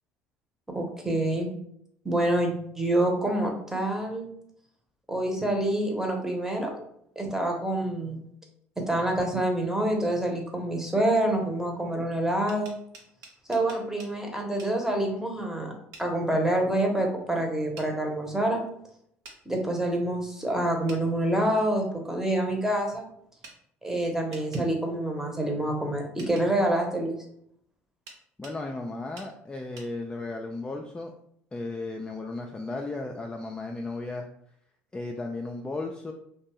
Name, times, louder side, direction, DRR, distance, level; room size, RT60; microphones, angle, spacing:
voice 1, 0.7-1.5 2.0-4.3 5.1-6.8 7.2-8.2 8.9-12.7 13.5-15.7 16.0-18.6 19.5-23.1 23.8-27.2, right 1 dB, 5° right, 1 dB, 0.8 m, -27 dB
sound 1, 12.5-14.1 14.6-14.7 15.9-16.1 17.8-17.9 19.2-19.4 20.9-21.0 23.4-23.6 24.3-24.7 26.2-26.5 28.1-28.6 29.2-29.3 29.8-29.9, right 3 dB, 65° right, 0.7 m, -47 dB
voice 2, 28.4-31.1 31.5-34.3 34.9-36.1, left 2 dB, 15° left, 1 dB, 0.3 m, -35 dB
2.5 x 2.3 x 3.0 m, 0.69 s
hypercardioid pair, 70°, 6 cm